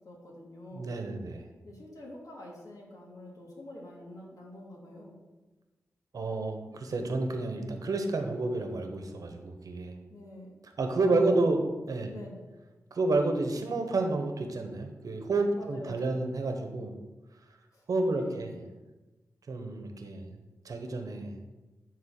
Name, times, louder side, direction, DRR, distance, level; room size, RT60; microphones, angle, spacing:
voice 1, 0.0-0.9 1.6-5.2 10.1-10.5 11.1-11.7 12.1-12.4 15.5-16.3 17.7-18.6, left 1 dB, 65° left, -3 dB, 2.5 m, -47 dB
voice 2, 0.7-1.4 6.1-9.9 10.8-11.6 11.9-12.1 12.9-16.9 17.9-18.5 19.5-20.4 20.6-21.3, right 2 dB, 70° right, 4 dB, 1.2 m, -30 dB
10.0 x 3.9 x 6.7 m, 1.2 s
wide cardioid pair, 75°, 6 cm